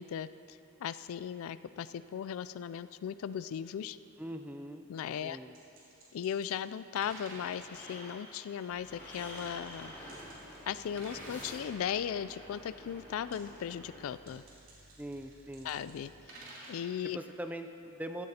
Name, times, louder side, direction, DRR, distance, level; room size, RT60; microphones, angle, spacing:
voice 1, 0.0-4.0 4.9-5.4 6.1-10.0 10.7-14.4 15.6-16.1 16.7-17.2, left 8 dB, 75° left, 16 dB, 0.3 m, -37 dB
voice 2, 4.2-4.9 5.2-5.5 15.0-15.7 17.1-18.3, right 1 dB, 5° right, 7 dB, 0.4 m, -42 dB
sound 1, 5.5-6.5 7.0-7.7 9.4-10.7 11.0-11.7 13.1-13.6 14.1-16.9, right 2 dB, 65° right, 3.0 m, -51 dB
sound 2, 7.5-14.0, left 1 dB, 10° left, 2.5 m, -49 dB
sound 3, 8.7-16.3, right 1 dB, 45° right, 1.0 m, -61 dB
16.0 x 12.5 x 2.8 m, 2.7 s
head